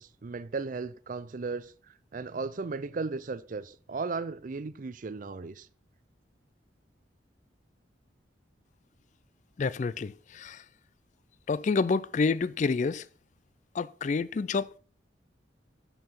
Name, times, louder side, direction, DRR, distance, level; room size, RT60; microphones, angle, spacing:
voice 1, 0.0-5.7, right 4 dB, 45° right, 0.4 m, -36 dB
voice 2, 9.6-10.6 11.5-13.0 13.7-14.8, left 4 dB, 40° left, 0.3 m, -28 dB
10.0 x 5.7 x 5.8 m
head